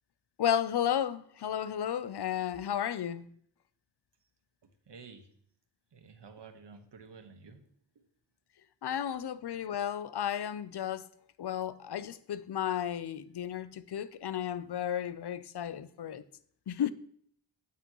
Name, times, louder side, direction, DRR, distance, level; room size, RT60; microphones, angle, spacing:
voice 1, 0.4-3.3 8.8-11.1 11.4-16.2 16.7-16.9, left 9 dB, 60° left, 0.7 m, -33 dB
voice 2, 4.9-5.3 5.9-7.6 7.9-8.0, right 5 dB, 70° right, 1.4 m, -51 dB
9.1 x 8.6 x 3.1 m
cardioid pair, 65°, 44 cm